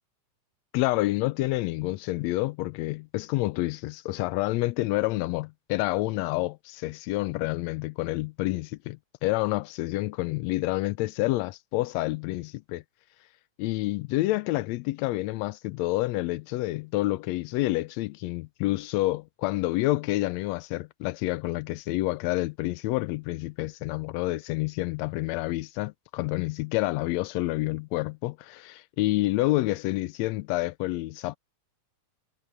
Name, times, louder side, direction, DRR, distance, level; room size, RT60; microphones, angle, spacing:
voice 1, 0.7-12.8 13.6-31.4, left 19 dB, 80° left, 1.7 m, -28 dB
omnidirectional pair, 3.3 m